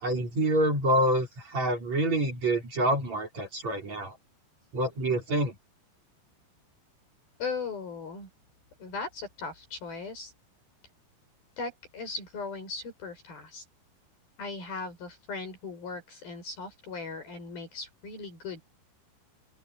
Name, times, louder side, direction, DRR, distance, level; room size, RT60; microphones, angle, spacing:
voice 1, 0.0-1.3 1.5-4.1 4.7-5.5, right 1 dB, 45° right, 6.0 m, -26 dB
voice 2, 7.4-8.3 8.8-10.3 11.6-13.7 14.4-18.6, left 4 dB, 70° left, 8.8 m, -38 dB
open air
omnidirectional pair, 4.5 m